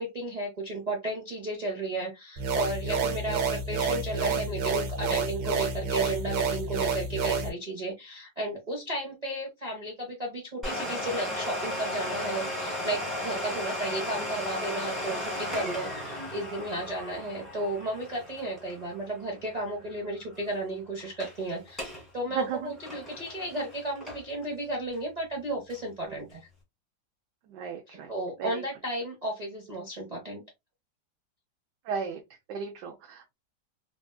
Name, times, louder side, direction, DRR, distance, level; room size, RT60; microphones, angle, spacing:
voice 1, 0.0-26.5 27.9-30.4, right 1 dB, 55° right, 0.4 m, -34 dB
sound 1, 2.4-7.5, right 4 dB, 90° right, 1.5 m, -29 dB
Domestic sounds home sounds, 10.6-20.1 20.3-20.4 21.0-21.4 21.7-22.0 22.4-24.4 24.9-25.0 25.7-25.8, left 1 dB, ahead, 1.3 m, -35 dB
voice 2, 22.3-22.7 26.1-26.2 27.5-28.1 28.4-28.6 31.8-32.2 32.5-33.3, right 6 dB, 70° right, 1.1 m, -35 dB
3.4 x 2.5 x 2.2 m
omnidirectional pair, 2.0 m